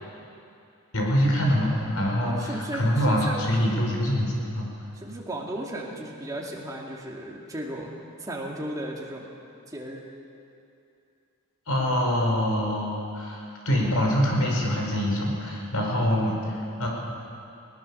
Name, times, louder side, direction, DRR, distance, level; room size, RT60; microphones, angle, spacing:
voice 1, 0.9-4.7 11.7-16.9, equal, 80° left, -1 dB, 4.8 m, -25 dB
voice 2, 2.2-3.4 4.9-9.3 9.7-10.1, right 1 dB, 15° right, -2 dB, 2.5 m, -35 dB
21.0 x 18.5 x 7.0 m, 2.6 s
head